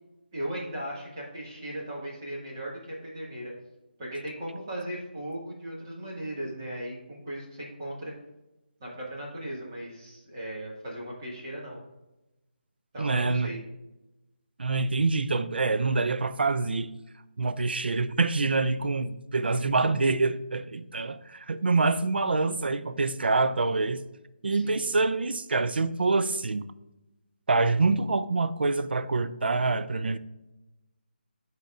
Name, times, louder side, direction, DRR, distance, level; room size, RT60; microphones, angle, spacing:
voice 1, 0.3-3.5 4.0-8.1 8.8-11.8 12.9-13.6 19.4-19.9 24.5-24.8, right 1 dB, 25° right, 1.7 m, -37 dB
voice 2, 13.0-13.5 14.6-16.9 17.4-24.0 24.4-26.7 27.5-30.2, right 3 dB, 70° right, 0.4 m, -26 dB
11.5 x 4.1 x 2.4 m
hypercardioid pair, 175°, 6 cm